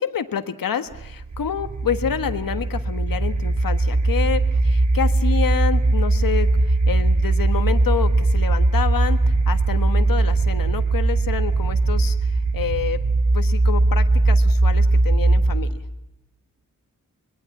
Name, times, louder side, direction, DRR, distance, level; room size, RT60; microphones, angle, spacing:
voice 1, 0.0-13.0 13.3-15.7, left 8 dB, 90° left, 9 dB, 1.5 m, -28 dB
sound 1, 0.9-15.8, right 2 dB, 60° right, 2.7 m, -19 dB
26.0 x 21.5 x 7.2 m, 0.92 s
wide cardioid pair, 150°, 33 cm